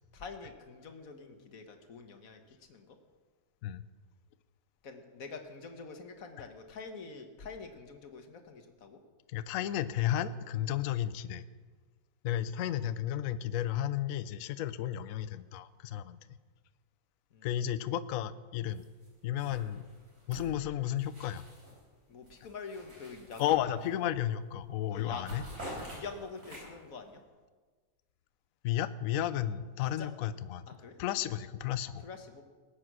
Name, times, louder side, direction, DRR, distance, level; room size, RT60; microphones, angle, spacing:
voice 1, 0.1-2.4 2.7-3.0 4.8-9.0 17.3-17.7 22.1-23.7 24.9-25.2 25.6-27.2 29.8-30.1 30.8-31.0 31.2-31.3 32.0-32.4, left 4 dB, 50° left, 6 dB, 1.7 m, -46 dB
voice 2, 9.3-11.4 12.2-16.2 17.4-18.9 19.2-19.9 20.3-21.4 23.4-25.4 28.6-30.7 31.0-32.0, left 11 dB, 70° left, 14 dB, 0.8 m, -33 dB
sound 1, 18.7-19.1 19.4-21.8 22.2-24.1 24.5-24.7 25.0-26.9, equal, 55° right, 4.4 m, -47 dB
19.5 x 8.6 x 6.2 m, 1.4 s
omnidirectional pair, 1.9 m